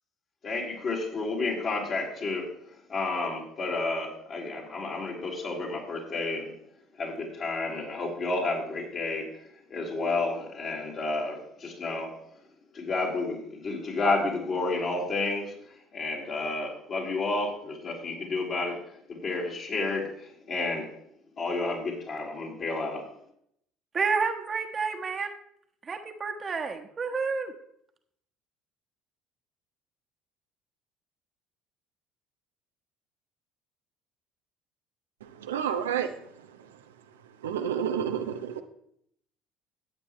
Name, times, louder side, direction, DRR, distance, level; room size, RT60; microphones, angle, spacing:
voice 1, 0.4-2.5 2.9-6.5 7.0-9.3 9.7-12.1 12.7-15.5 15.9-18.8 19.1-20.9 21.4-23.0, left 3 dB, 45° left, -3 dB, 4.1 m, -31 dB
voice 2, 23.9-25.3 25.9-27.5, right 5 dB, 35° right, 5 dB, 1.3 m, -29 dB
voice 3, 35.2-36.1 37.4-38.6, right 8 dB, 85° right, 7 dB, 0.8 m, -30 dB
14.5 x 8.6 x 3.2 m, 0.70 s
hypercardioid pair, 65°, 0 cm